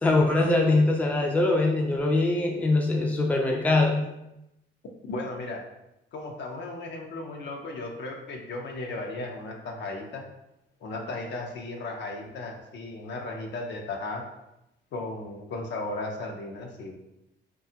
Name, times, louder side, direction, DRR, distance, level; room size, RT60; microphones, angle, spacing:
voice 1, 0.0-4.0, left 2 dB, 10° left, 0 dB, 0.4 m, -22 dB
voice 2, 5.0-5.6 6.1-10.2 10.8-14.2 14.9-16.9, left 2 dB, 65° left, 2 dB, 0.6 m, -35 dB
2.7 x 2.3 x 2.7 m, 0.88 s
cardioid pair, 90°, 20 cm